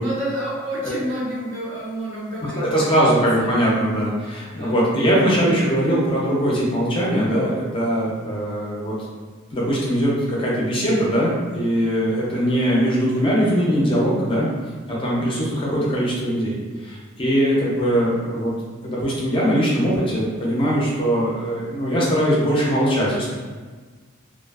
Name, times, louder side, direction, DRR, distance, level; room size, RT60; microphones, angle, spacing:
voice 1, 0.0-3.1 3.4-3.5 4.6-4.8, right 1 dB, 65° right, -6 dB, 0.8 m, -29 dB
voice 2, 2.6-9.0 9.5-14.5 14.9-18.5 18.8-23.3, equal, 25° left, -5 dB, 0.5 m, -21 dB
2.4 x 2.4 x 2.3 m, 1.4 s
head